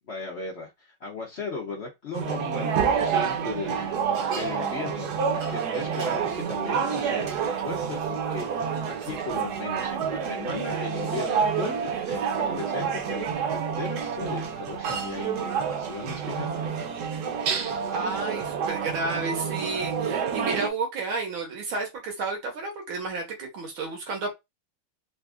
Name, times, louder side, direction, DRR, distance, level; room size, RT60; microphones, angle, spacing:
voice 1, 0.1-11.8 12.1-16.6, left 4 dB, 70° left, 0.6 m, -37 dB
sound 1, 2.1-20.7, right 6 dB, 70° right, 1.1 m, -28 dB
voice 2, 17.9-24.3, right 3 dB, 85° right, 1.9 m, -31 dB
4.0 x 2.5 x 2.4 m
omnidirectional pair, 2.2 m